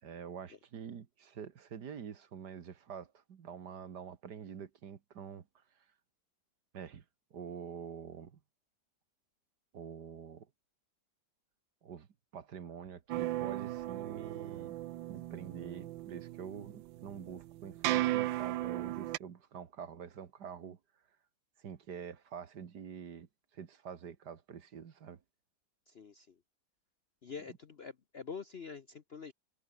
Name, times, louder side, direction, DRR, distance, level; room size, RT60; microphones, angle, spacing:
voice 1, 0.0-5.9 6.7-7.0 7.3-8.4 9.7-10.5 11.8-12.1 12.3-14.8 15.1-20.8 21.6-25.2, right 7 dB, 65° right, 2.0 m, -46 dB
sound 1, 13.1-19.2, right 15 dB, 90° right, 1.4 m, -36 dB
voice 2, 25.9-26.3 27.2-29.3, left 5 dB, 45° left, 0.8 m, -46 dB
omnidirectional pair, 2.0 m